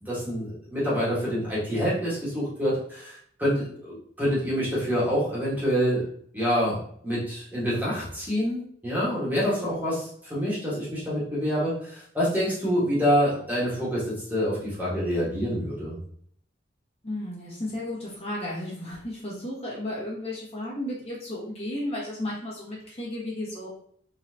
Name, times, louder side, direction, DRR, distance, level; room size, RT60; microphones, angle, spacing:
voice 1, 0.0-6.1 6.3-6.8 7.0-16.0, equal, 10° right, -8 dB, 1.5 m, -26 dB
voice 2, 17.0-23.7, left 1 dB, 30° left, -6 dB, 1.4 m, -33 dB
4.0 x 3.8 x 2.8 m, 0.63 s
head